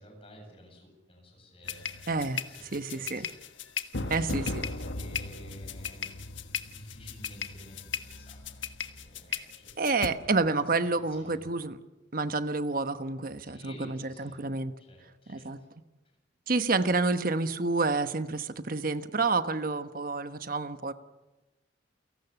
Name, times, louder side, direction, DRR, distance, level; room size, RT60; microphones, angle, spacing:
voice 1, 0.0-2.0 2.5-3.4 4.0-6.2 6.7-9.7 10.2-10.3 10.6-11.5 13.4-14.5 14.8-15.7, equal, 30° left, 2 dB, 8.0 m, -52 dB
sound 1, 1.6-10.1, left 4 dB, 85° left, 1.4 m, -36 dB
voice 2, 2.1-2.4 2.7-3.3 4.1-4.5 9.3-9.4 9.8-11.8 12.1-14.7 15.3-15.6 16.5-20.9, right 3 dB, 50° right, 10 dB, 1.2 m, -29 dB
29.5 x 18.0 x 7.1 m, 1.1 s
head